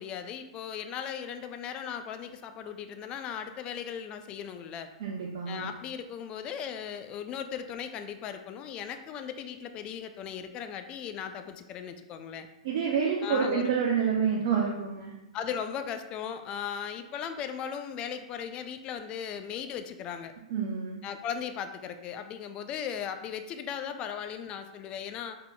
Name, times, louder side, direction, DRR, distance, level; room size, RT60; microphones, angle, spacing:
voice 1, 0.0-4.9 5.5-12.5 13.2-13.7 15.3-20.3 21.0-25.4, left 8 dB, 25° left, 8 dB, 0.4 m, -37 dB
voice 2, 5.0-5.7 12.6-15.1 20.5-21.0, right 6 dB, 45° right, -2 dB, 0.6 m, -28 dB
5.7 x 3.6 x 2.2 m, 1.0 s
figure-of-eight pair, 110°, 4 cm